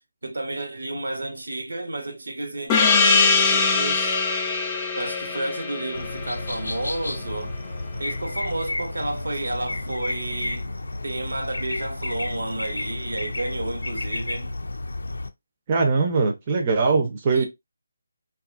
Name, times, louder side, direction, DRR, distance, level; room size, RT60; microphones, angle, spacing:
voice 1, 0.2-4.2 5.0-7.6 8.0-10.7 11.0-14.5 17.3-17.5, right 2 dB, 75° right, 0.9 m, -31 dB
Gong, 2.7-7.8, left 4 dB, 15° left, 0.5 m, -23 dB
sound 1, 5.9-15.3, left 2 dB, 80° left, 0.4 m, -31 dB
voice 2, 15.7-17.5, right 4 dB, 30° right, 0.6 m, -21 dB
2.7 x 2.4 x 2.5 m
figure-of-eight pair, 155°, 0 cm